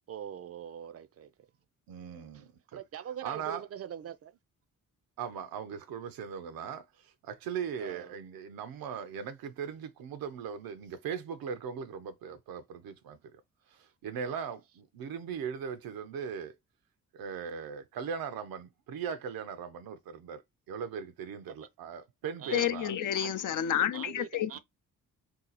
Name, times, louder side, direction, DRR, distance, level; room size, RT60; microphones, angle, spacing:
voice 1, 0.1-1.3 2.3-4.3 7.8-8.1 22.4-23.3 23.9-24.6, right 9 dB, 45° right, 0.4 m, -43 dB
voice 2, 1.9-2.8 3.2-3.6 5.2-13.4 13.7-16.5 17.1-20.4 20.7-22.9 24.5-24.6, right 7 dB, 85° right, 0.7 m, -39 dB
voice 3, 22.5-24.6, left 10 dB, 65° left, 0.5 m, -30 dB
2.8 x 2.3 x 4.0 m
cardioid pair, 75°, 34 cm